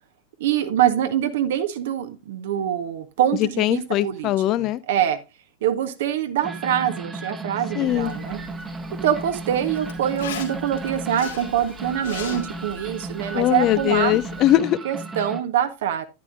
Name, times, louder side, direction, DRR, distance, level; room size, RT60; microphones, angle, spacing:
voice 1, 0.4-4.3 4.9-5.2 5.6-8.4 9.0-14.2 14.8-16.0, right 10 dB, 55° right, 0.8 m, -24 dB
voice 2, 3.3-4.8 7.8-8.1 13.3-14.8, left 14 dB, 35° left, 0.4 m, -21 dB
sound 1, 6.4-15.4, right 3 dB, 15° right, 1.0 m, -34 dB
Zipper (clothing), 7.9-14.5, left 7 dB, 60° left, 2.5 m, -40 dB
10.5 x 9.9 x 2.5 m
figure-of-eight pair, 90°, 0 cm